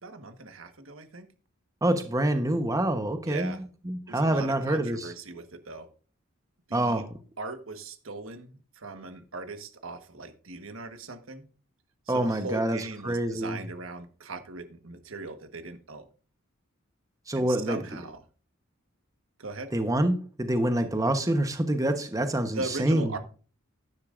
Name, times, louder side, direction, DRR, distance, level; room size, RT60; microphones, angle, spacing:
voice 1, 0.0-1.3 3.3-3.6 4.1-5.9 6.7-7.0 7.4-11.5 12.1-16.1 17.4-18.2 19.4-19.7 22.5-23.2, right 3 dB, 80° right, 1.4 m, -39 dB
voice 2, 1.8-5.1 6.7-7.1 12.1-13.6 17.3-17.8 19.7-23.2, right 1 dB, 15° right, 1.0 m, -26 dB
12.0 x 10.5 x 2.5 m
head